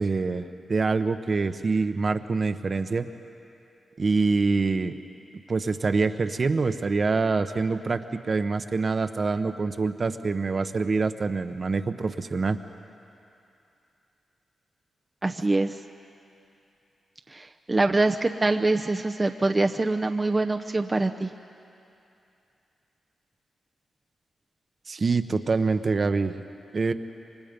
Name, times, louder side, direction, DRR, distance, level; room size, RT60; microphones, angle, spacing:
voice 1, 0.0-3.1 4.0-4.9 5.5-8.0 8.3-12.6 24.9-26.4 26.7-26.9, right 4 dB, 50° right, 8 dB, 1.0 m, -25 dB
voice 2, 15.2-15.8 17.3-21.3, right 2 dB, 30° right, 5 dB, 0.7 m, -24 dB
27.5 x 24.5 x 5.3 m, 2.7 s
cardioid pair, 50°, 0 cm